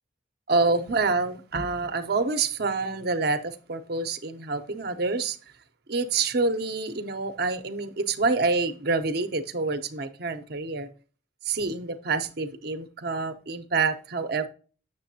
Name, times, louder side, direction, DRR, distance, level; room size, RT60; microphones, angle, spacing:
voice 1, 0.5-5.4 5.9-10.9 11.4-14.5, right 3 dB, 55° right, 0.7 m, -27 dB
7.4 x 6.7 x 2.7 m
head